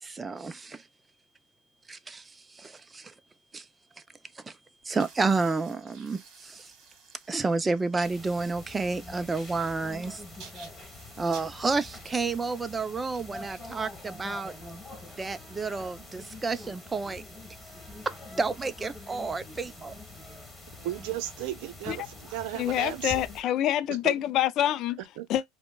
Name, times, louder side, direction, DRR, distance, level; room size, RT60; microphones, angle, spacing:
voice 1, 0.0-0.9 1.9-3.1 3.5-3.7 4.0-4.1 4.3-4.6 4.8-6.7 7.3-10.2 11.2-14.5 15.1-17.2 18.0-19.9, right 3 dB, 20° right, 0.5 m, -30 dB
sound 1, 4.8-15.9, right 5 dB, 50° right, 1.4 m, -54 dB
sound 2, 8.0-23.4, left 2 dB, 10° left, 1.5 m, -45 dB
voice 2, 20.8-23.3 24.0-24.1 25.2-25.3, right 13 dB, 70° right, 0.7 m, -35 dB
voice 3, 22.5-25.0 25.3-25.4, left 12 dB, 50° left, 0.4 m, -26 dB
5.0 x 2.2 x 2.2 m
supercardioid pair, 100°, 0 cm